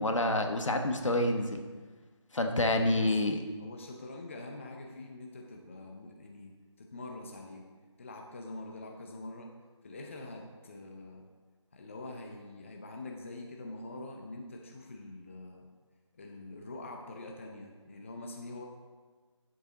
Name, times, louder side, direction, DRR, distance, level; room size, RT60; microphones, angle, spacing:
voice 1, 0.0-1.6 2.3-3.4, left 1 dB, 75° left, 5 dB, 1.3 m, -28 dB
voice 2, 2.8-3.1 3.6-6.5 6.8-7.7 8.0-9.5 9.8-11.2 11.7-15.7 16.1-18.6, left 2 dB, 25° left, 2 dB, 0.7 m, -45 dB
10.0 x 7.6 x 3.9 m, 1.4 s
figure-of-eight pair, 165°, 16 cm